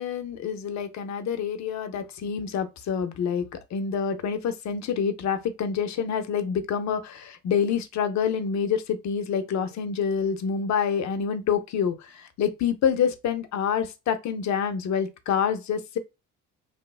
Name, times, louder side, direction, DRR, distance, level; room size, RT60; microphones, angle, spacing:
voice 1, 0.0-16.0, left 7 dB, 65° left, 0.6 m, -27 dB
2.9 x 2.0 x 2.3 m
cardioid pair, 90°, 30 cm